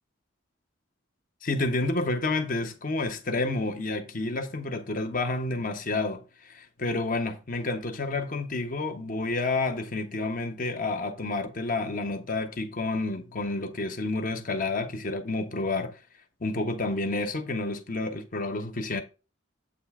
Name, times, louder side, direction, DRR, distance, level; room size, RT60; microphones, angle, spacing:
voice 1, 1.4-6.2 6.5-15.9 16.4-19.0, left 2 dB, 45° left, 0.9 m, -29 dB
7.9 x 3.3 x 4.8 m
head